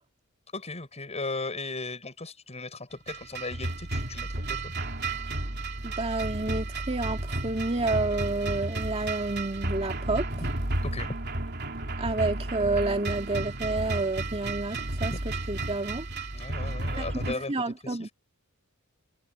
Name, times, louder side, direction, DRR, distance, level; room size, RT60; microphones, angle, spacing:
voice 1, 0.5-4.7 10.3-10.6 10.8-11.1 15.1-15.2 16.3-18.1, left 3 dB, 30° left, 7.8 m, -37 dB
sound 1, 3.1-17.3, right 2 dB, 50° right, 3.3 m, -32 dB
voice 2, 5.8-10.3 12.0-16.1 17.0-17.1 17.5-18.1, right 2 dB, 30° right, 2.4 m, -29 dB
head